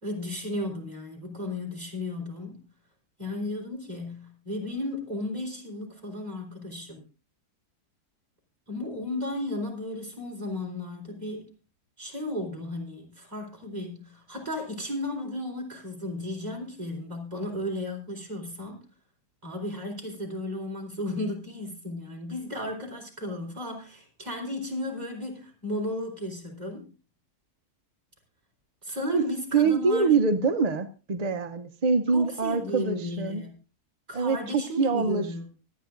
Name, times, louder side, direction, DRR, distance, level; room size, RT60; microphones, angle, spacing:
voice 1, 0.0-2.7 3.2-7.0 8.7-11.5 12.0-18.9 19.4-26.9 28.8-30.2 32.1-33.5 34.1-35.4, left 1 dB, 25° right, -1 dB, 4.0 m, -34 dB
voice 2, 29.5-33.4 34.1-35.3, right 4 dB, 50° right, 8 dB, 0.4 m, -25 dB
24.5 x 9.3 x 2.5 m, 0.34 s
omnidirectional pair, 1.7 m